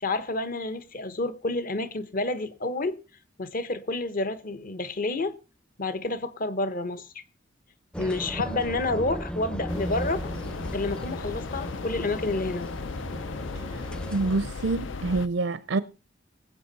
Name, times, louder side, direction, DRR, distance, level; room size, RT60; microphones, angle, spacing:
voice 1, 0.0-3.0 3.4-5.3 5.8-7.1 8.0-10.3 10.7-12.7, left 2 dB, 45° left, 1.0 m, -29 dB
sound 1, 7.9-14.4, equal, 5° left, 0.5 m, -36 dB
sound 2, 9.7-15.3, left 4 dB, 75° left, 0.5 m, -36 dB
voice 2, 14.1-15.8, right 3 dB, 75° right, 0.5 m, -26 dB
20.0 x 8.3 x 4.1 m
head